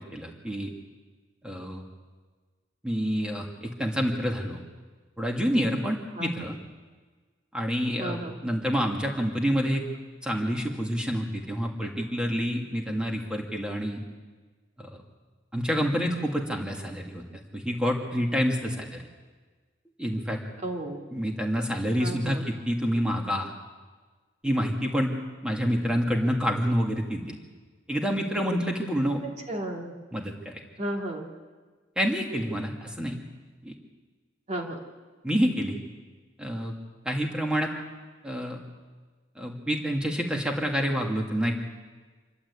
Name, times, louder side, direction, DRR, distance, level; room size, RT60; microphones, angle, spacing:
voice 1, 0.1-0.7 1.4-1.8 2.8-4.6 5.2-6.6 7.5-9.8 10.2-14.0 14.8-15.0 15.5-17.2 17.5-19.0 20.0-20.4 21.1-23.5 24.4-25.1 25.4-27.4 27.9-29.2 30.1-30.6 32.0-33.2 33.6-33.7 35.2-35.8 36.4-36.7 37.0-37.7 38.2-38.6 39.4-41.5, equal, 5° right, 1 dB, 2.4 m, -28 dB
voice 2, 8.0-8.4 20.6-21.1 22.0-22.5 29.5-29.9 30.8-31.3 34.5-34.8, right 1 dB, 35° right, 0 dB, 2.6 m, -33 dB
27.0 x 12.5 x 8.5 m, 1.4 s
head